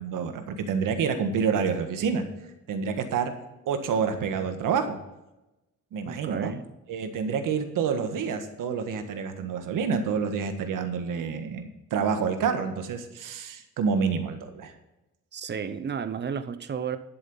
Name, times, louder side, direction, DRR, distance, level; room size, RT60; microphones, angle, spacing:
voice 1, 0.0-2.2 2.7-3.3 3.7-5.0 5.9-6.5 6.9-14.7, right 6 dB, 85° right, 7 dB, 1.7 m, -28 dB
voice 2, 6.0-6.6 15.3-17.0, right 7 dB, 35° right, 11 dB, 0.8 m, -32 dB
11.0 x 7.6 x 5.6 m, 0.96 s
cardioid pair, 155°, 31 cm